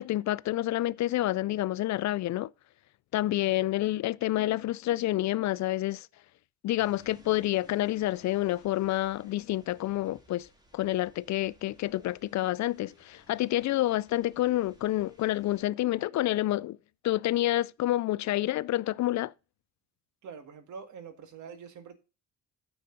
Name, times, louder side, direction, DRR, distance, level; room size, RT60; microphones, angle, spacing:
voice 1, 0.0-2.5 3.1-6.1 6.6-10.5 10.7-16.8 17.0-19.3, left 15 dB, 65° left, 0.5 m, -28 dB
sound 1, 6.8-15.7, right 2 dB, 15° right, 1.9 m, -60 dB
voice 2, 20.2-22.0, right 6 dB, 70° right, 1.8 m, -45 dB
9.6 x 6.9 x 3.8 m
cardioid pair, 115°, 31 cm